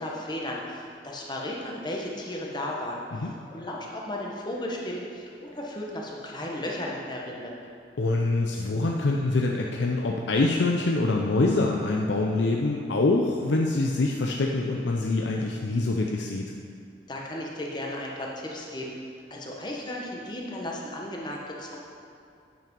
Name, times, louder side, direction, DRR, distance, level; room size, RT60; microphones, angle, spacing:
voice 1, 0.0-7.6 17.1-18.9 19.3-21.8, left 1 dB, 25° left, -2 dB, 1.0 m, -35 dB
voice 2, 8.0-16.4, left 2 dB, 70° left, 0 dB, 0.5 m, -25 dB
8.8 x 5.9 x 5.3 m, 2.4 s
head